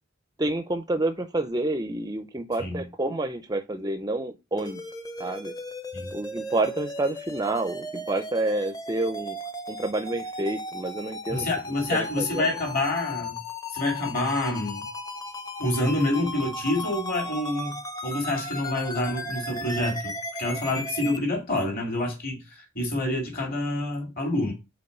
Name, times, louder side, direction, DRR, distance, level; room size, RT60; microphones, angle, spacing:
voice 1, 0.4-4.8 5.2-5.5 6.1-9.4 9.7-11.5 11.9-12.6, right 2 dB, 20° right, 0.4 m, -29 dB
sound 1, 4.6-21.2, left 1 dB, 20° left, 0.7 m, -36 dB
voice 2, 11.3-13.4 13.7-14.9 15.6-24.5, left 1 dB, 45° left, 2.6 m, -27 dB
5.4 x 4.4 x 5.3 m
head